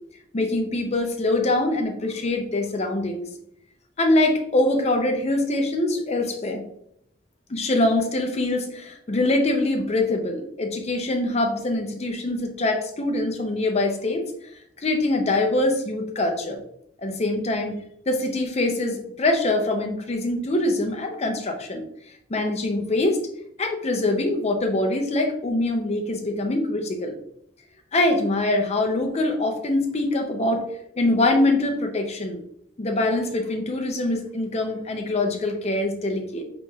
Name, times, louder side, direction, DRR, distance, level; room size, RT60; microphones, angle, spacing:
voice 1, 0.3-3.2 4.0-6.6 7.5-14.3 14.8-16.6 17.0-21.8 22.3-23.2 23.6-27.2 27.9-30.7 31.0-32.4 32.8-36.4, left 2 dB, 30° left, 4 dB, 0.5 m, -24 dB
5.5 x 3.0 x 2.3 m, 0.73 s
head